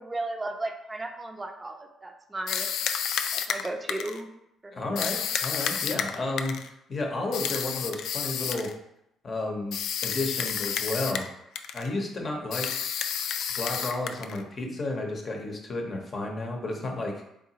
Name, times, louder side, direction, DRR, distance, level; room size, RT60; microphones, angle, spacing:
voice 1, 0.0-2.7 3.3-4.3 4.6-4.7, right 2 dB, 20° right, 4 dB, 0.5 m, -35 dB
sound 1, 2.5-4.2 5.0-6.7 7.3-8.7 9.7-11.3 11.6-11.9 12.5-14.4, left 8 dB, 75° left, 0.3 m, -30 dB
voice 2, 4.7-8.7 9.2-11.3 11.7-12.7 13.6-17.3, left 2 dB, 40° left, 1 dB, 0.8 m, -32 dB
3.8 x 3.8 x 2.8 m, 0.82 s
cardioid pair, 105°, 0 cm